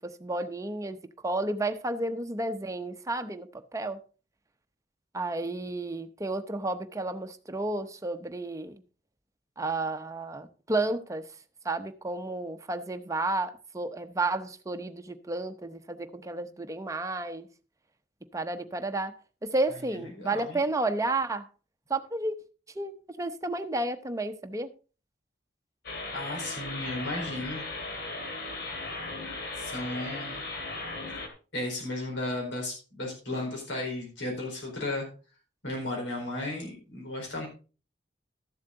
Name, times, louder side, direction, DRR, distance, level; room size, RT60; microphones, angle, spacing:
voice 1, 0.2-1.0 1.2-4.0 5.1-8.8 9.6-11.2 11.6-17.5 18.3-19.1 19.4-21.5 21.9-22.4 22.8-24.7, right 2 dB, 20° right, 0.8 m, -31 dB
voice 2, 19.9-20.6 26.1-27.6 29.6-30.4 31.5-35.1 35.6-37.5, left 1 dB, 90° left, 4.4 m, -34 dB
sound 1, 25.8-31.3, left 2 dB, 65° left, 2.3 m, -37 dB
13.0 x 7.3 x 3.9 m
head